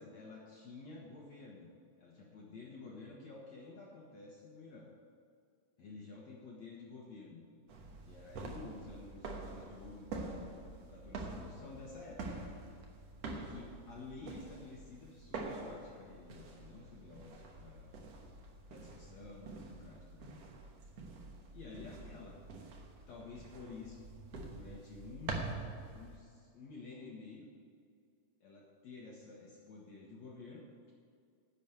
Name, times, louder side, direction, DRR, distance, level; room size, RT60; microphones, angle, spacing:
voice 1, 0.0-1.7 2.0-4.9 5.8-7.4 8.1-12.5 13.3-18.1 18.7-20.4 21.5-22.3 23.1-24.0 24.3-25.6 25.9-27.5 28.4-30.9, left 3 dB, 60° left, -3 dB, 1.9 m, -51 dB
sound 1, 7.7-26.2, right 3 dB, 90° right, 1.4 m, -46 dB
10.5 x 7.2 x 8.0 m, 2.2 s
omnidirectional pair, 4.8 m